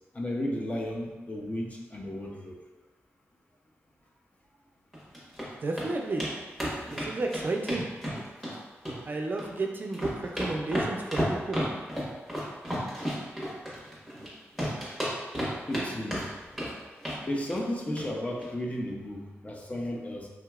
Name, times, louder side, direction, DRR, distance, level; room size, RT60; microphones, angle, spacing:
voice 1, 0.1-2.6 15.7-16.3 17.3-20.3, left 1 dB, 30° left, 0 dB, 0.6 m, -33 dB
sound 1, 4.9-5.5 5.8-5.9 6.2-6.3 6.6-8.5 8.8-9.5 9.8-14.3 14.6-15.8 16.1-16.7 17.0-17.2 17.5-17.7 18.0-18.1 18.4-18.5, equal, 5° left, 1.2 m, -32 dB
voice 2, 5.6-6.3 6.9-7.9 9.1-11.6, right 2 dB, 45° right, 2 dB, 0.4 m, -32 dB
3.5 x 2.8 x 2.3 m, 1.2 s
cardioid pair, 65°, 5 cm